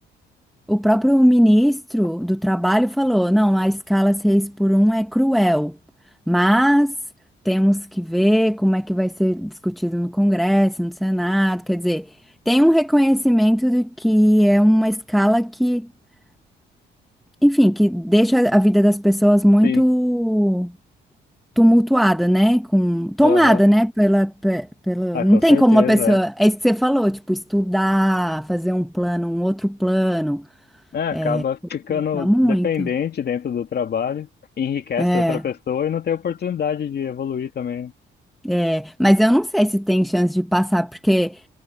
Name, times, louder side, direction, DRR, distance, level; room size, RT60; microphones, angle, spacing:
voice 1, 0.7-5.7 6.3-6.9 7.4-12.0 12.4-15.9 17.4-20.7 21.6-30.4 31.1-31.4 32.1-32.9 35.0-35.4 38.4-41.4, equal, ahead, 1.2 m, -18 dB
voice 2, 23.2-23.6 25.1-26.2 30.9-34.3 34.6-37.9, left 8 dB, 55° left, 2.7 m, -25 dB
cardioid pair, 90°, 20 cm